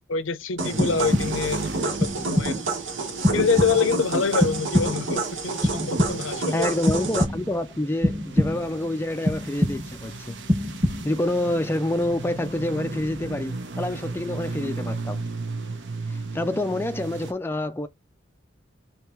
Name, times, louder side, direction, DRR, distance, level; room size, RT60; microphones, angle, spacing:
voice 1, 0.1-2.0 2.2-2.5 3.3-6.7, left 5 dB, 75° left, 0.6 m, -25 dB
sound 1, 0.6-17.3, right 3 dB, 65° right, 0.8 m, -37 dB
sound 2, 0.6-7.2, right 3 dB, 85° right, 1.5 m, -29 dB
sound 3, 0.8-1.6 2.0-2.7 3.2-4.0 4.4-5.2 5.6-6.4 6.9-7.7 8.0-8.8 9.3-10.1 10.5-11.3, left 1 dB, 10° right, 1.0 m, -25 dB
voice 2, 6.5-10.4 11.0-15.3 16.1-17.9, left 1 dB, 10° left, 0.4 m, -27 dB
3.4 x 3.1 x 4.4 m
head